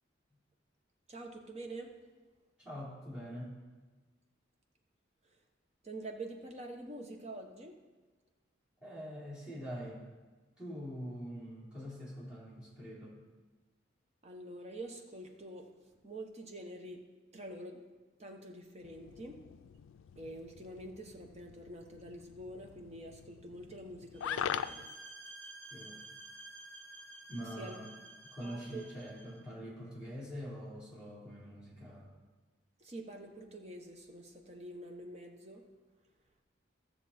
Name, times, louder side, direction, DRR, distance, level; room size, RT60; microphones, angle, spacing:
voice 1, 1.1-1.9 5.2-5.4 5.8-7.8 14.2-17.0 17.3-17.8 18.2-19.4 20.1-24.9 27.6-27.8 28.4-28.9 32.8-35.7, right 1 dB, 35° right, 3 dB, 1.1 m, -46 dB
voice 2, 2.6-3.5 8.8-10.0 10.6-13.2 25.7-26.0 27.3-27.9 28.3-32.1, equal, 5° right, -9 dB, 3.7 m, -44 dB
sound 1, 18.8-24.9, left 9 dB, 90° left, 0.3 m, -43 dB
sound 2, 24.1-29.4, right 2 dB, 60° right, 1.5 m, -51 dB
14.5 x 7.0 x 4.3 m, 1.3 s
head